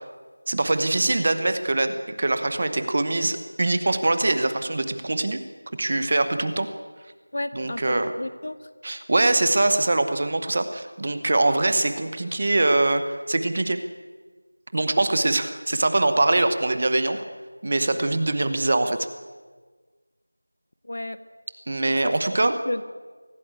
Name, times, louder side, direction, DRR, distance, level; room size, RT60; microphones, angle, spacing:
voice 1, 0.5-5.4 5.8-6.7 7.5-8.1 8.8-13.8 14.7-17.2 17.6-19.1 21.7-22.6, right 2 dB, 20° right, 10 dB, 0.9 m, -23 dB
voice 2, 7.3-8.6 20.9-21.2 22.0-22.1 22.7-22.8, left 1 dB, 35° left, 12 dB, 1.0 m, -31 dB
24.5 x 16.5 x 8.2 m, 1.4 s
figure-of-eight pair, 180°, 0 cm